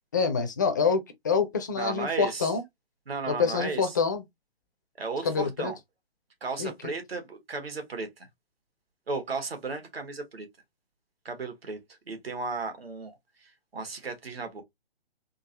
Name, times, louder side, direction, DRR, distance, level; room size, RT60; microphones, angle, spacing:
voice 1, 0.1-2.6 3.3-4.2 5.2-5.7 6.6-6.9, left 5 dB, 20° left, 0.3 m, -26 dB
voice 2, 1.7-2.5 3.1-4.0 5.0-5.8 6.4-8.3 9.1-10.5 11.2-11.8 12.1-14.6, right 4 dB, 75° right, 1.4 m, -35 dB
3.7 x 2.6 x 2.8 m
figure-of-eight pair, 135°, 30 cm